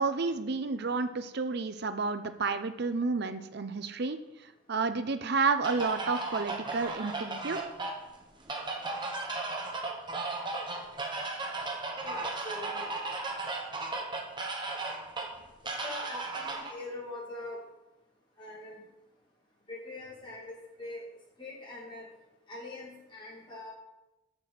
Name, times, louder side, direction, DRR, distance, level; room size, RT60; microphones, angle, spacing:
voice 1, 0.0-4.2 4.7-7.6, right 4 dB, 50° right, 10 dB, 0.6 m, -30 dB
sound 1, 5.6-16.7, right 3 dB, 20° right, 1.0 m, -36 dB
voice 2, 12.0-12.9 15.8-17.6 18.4-18.8 19.7-21.1 21.4-22.0 22.5-23.7, left 2 dB, 20° left, -3 dB, 2.2 m, -42 dB
6.7 x 6.1 x 7.4 m, 0.99 s
head